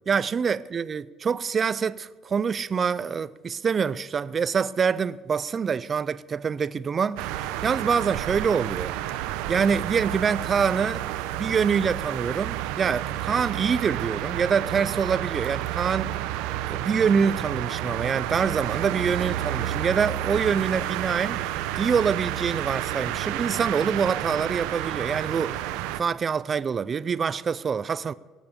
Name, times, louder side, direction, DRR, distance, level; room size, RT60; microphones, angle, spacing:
voice 1, 0.1-9.0 9.5-11.0 11.3-16.1 16.7-21.4 21.8-25.6 26.0-28.1, right 6 dB, 20° right, 0.3 m, -25 dB
sound 1, 7.2-26.0, right 13 dB, 80° right, 0.8 m, -30 dB
18.5 x 9.1 x 7.0 m
cardioid pair, 180°, 0 cm